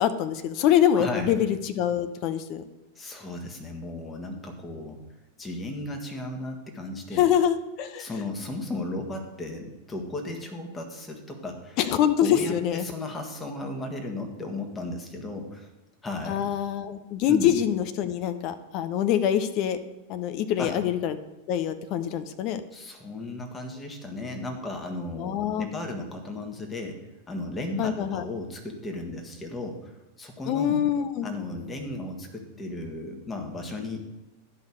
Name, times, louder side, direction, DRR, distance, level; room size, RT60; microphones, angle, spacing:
voice 1, 0.0-2.6 7.2-8.1 11.8-12.8 16.3-19.8 20.1-21.2 21.5-22.6 25.2-25.7 27.8-28.3 30.5-31.3, left 10 dB, 40° left, 10 dB, 0.7 m, -25 dB
voice 2, 0.9-1.4 2.9-5.0 5.4-7.3 8.0-11.8 12.2-15.7 16.0-16.4 17.3-17.5 20.6-20.7 22.7-27.0 27.3-30.8 31.2-34.0, left 2 dB, 15° left, 3 dB, 1.7 m, -35 dB
11.5 x 5.4 x 6.4 m, 0.95 s
figure-of-eight pair, 90°, 0 cm